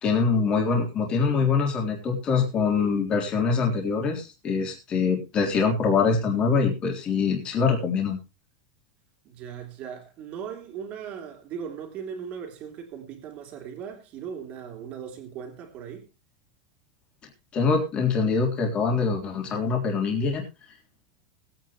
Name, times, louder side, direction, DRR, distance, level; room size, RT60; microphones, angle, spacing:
voice 1, 0.0-8.2 17.5-20.4, left 5 dB, 25° left, 3.6 m, -24 dB
voice 2, 9.2-16.1, right 7 dB, 35° right, 3.3 m, -38 dB
20.0 x 9.2 x 3.1 m
supercardioid pair, 160°, 4 cm